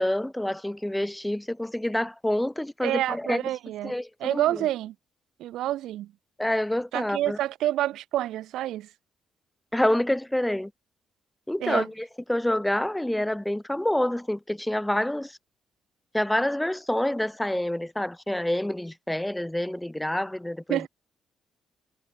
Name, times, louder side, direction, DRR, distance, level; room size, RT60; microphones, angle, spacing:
voice 1, 0.0-3.4 3.8-4.6 6.4-7.4 9.7-10.7 11.5-15.4 16.1-20.9, left 1 dB, 5° left, 3.8 m, -27 dB
voice 2, 2.8-4.9 5.4-6.1 6.9-8.9 11.6-11.9 20.7-20.9, right 13 dB, 85° right, 7.5 m, -28 dB
cardioid pair, 90°, 0 cm